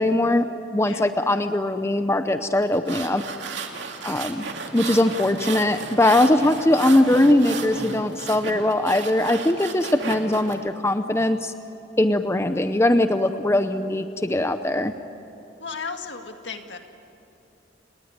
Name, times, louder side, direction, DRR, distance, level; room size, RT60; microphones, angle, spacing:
voice 1, 0.0-3.2 4.0-4.5 4.7-11.5 12.0-14.9, left 1 dB, 15° left, 9 dB, 0.6 m, -21 dB
sound 1, 2.6-10.5, right 4 dB, 75° right, 2.6 m, -34 dB
voice 2, 15.6-16.8, left 5 dB, 75° left, 5 dB, 2.0 m, -34 dB
29.5 x 19.5 x 9.3 m, 2.7 s
head